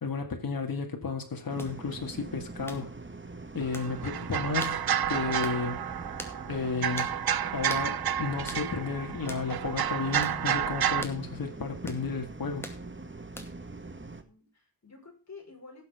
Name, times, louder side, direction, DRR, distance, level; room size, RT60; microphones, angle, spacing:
voice 1, 0.0-2.9 3.5-4.8 5.1-5.8 6.5-7.2 7.5-12.7, left 4 dB, 70° left, 2.1 m, -33 dB
sound 1, 1.5-14.2, right 3 dB, 35° right, 1.6 m, -43 dB
sound 2, 1.6-1.8 2.7-2.9 3.7-3.9 4.6-4.8 5.4-5.6 6.2-6.4 7.0-7.2 7.7-7.9 8.5-8.7 9.3-9.5 10.2-10.4 11.0-11.2 11.9-12.1 12.6-12.8 13.4-13.7, left 1 dB, 5° left, 2.3 m, -42 dB
sound 3, 3.6-11.0, right 9 dB, 80° right, 0.6 m, -30 dB
voice 2, 13.8-15.9, left 4 dB, 50° left, 5.4 m, -51 dB
17.5 x 7.6 x 3.6 m
wide cardioid pair, 85°, 36 cm